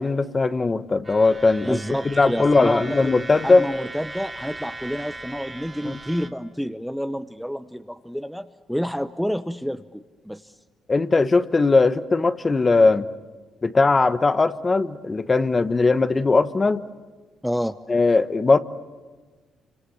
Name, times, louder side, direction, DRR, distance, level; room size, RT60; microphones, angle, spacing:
voice 1, 0.0-1.8 2.0-3.7 5.8-6.0 10.9-13.1 13.6-16.8 17.9-18.6, left 3 dB, 30° left, 12 dB, 1.2 m, -19 dB
sound 1, 1.0-6.3, right 2 dB, 25° right, 2.3 m, -38 dB
voice 2, 1.6-3.1 3.4-10.5 17.4-17.8, equal, ahead, 10 dB, 0.8 m, -29 dB
28.0 x 26.0 x 7.1 m, 1.4 s
cardioid pair, 90°, 0 cm